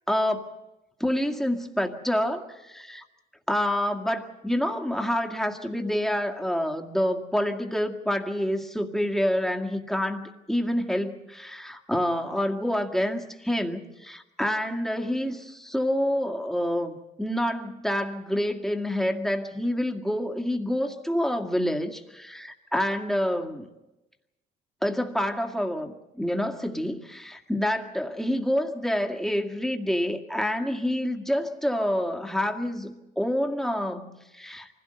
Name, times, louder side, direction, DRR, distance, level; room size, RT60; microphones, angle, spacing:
voice 1, 0.1-0.4 1.0-3.0 3.5-23.7 24.8-34.7, equal, ahead, 3 dB, 2.0 m, -27 dB
24.5 x 16.5 x 7.9 m, 1.0 s
cardioid pair, 90°, 20 cm